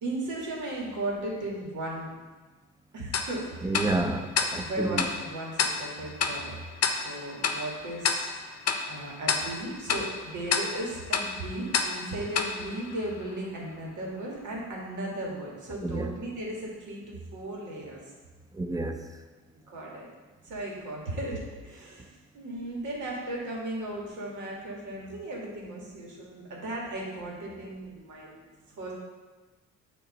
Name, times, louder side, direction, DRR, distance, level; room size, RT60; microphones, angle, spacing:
voice 1, 0.0-2.1 2.9-3.8 4.4-6.6 6.9-8.3 8.9-18.0 19.7-20.1 20.4-28.4 28.8-28.9, right 1 dB, 80° right, -3 dB, 1.7 m, -36 dB
Tick-tock, 3.1-13.6, left 5 dB, 55° left, 0.6 m, -31 dB
voice 2, 3.6-5.0 15.8-16.1 18.5-19.1, right 2 dB, 10° right, 6 dB, 0.5 m, -30 dB
7.0 x 3.0 x 5.3 m, 1.3 s
cardioid pair, 90°, 30 cm